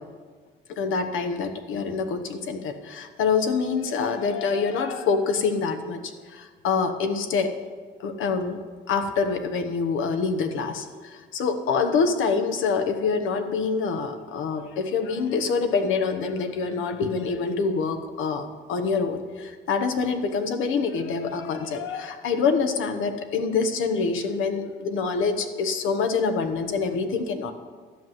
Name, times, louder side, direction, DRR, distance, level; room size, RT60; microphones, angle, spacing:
voice 1, 0.8-7.6 8.0-8.6 8.9-27.5, left 5 dB, 90° left, 7 dB, 1.2 m, -26 dB
12.5 x 6.2 x 9.3 m, 1.5 s
cardioid pair, 90°, 20 cm